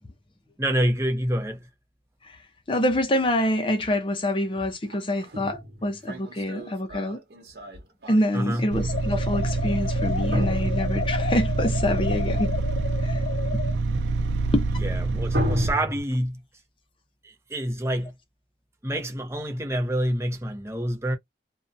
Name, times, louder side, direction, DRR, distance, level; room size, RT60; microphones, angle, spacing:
voice 1, 0.6-1.6 8.3-8.7 14.8-16.4 17.2-18.1 18.8-21.2, right 1 dB, 15° right, 0.6 m, -27 dB
voice 2, 2.7-7.2 8.1-12.5 13.0-13.2 13.5-13.6 14.5-14.7, left 1 dB, 30° left, 0.6 m, -26 dB
sound 1, 4.9-8.6 10.3-11.4 15.3-16.0, equal, 65° right, 1.0 m, -31 dB
sound 2, 8.7-15.7, right 3 dB, 85° right, 0.4 m, -26 dB
sound 3, 8.9-13.8, left 6 dB, 90° left, 0.4 m, -32 dB
2.6 x 2.2 x 2.6 m
head